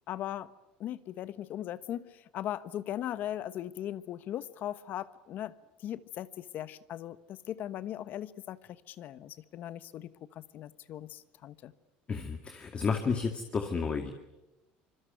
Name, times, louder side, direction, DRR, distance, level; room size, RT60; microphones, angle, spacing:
voice 1, 0.1-0.5 0.8-5.6 5.8-11.7, left 11 dB, 55° left, 15 dB, 1.2 m, -39 dB
voice 2, 12.1-14.1, left 5 dB, 30° left, 6 dB, 2.3 m, -31 dB
25.5 x 21.5 x 9.3 m, 0.99 s
supercardioid pair, 110°, 4 cm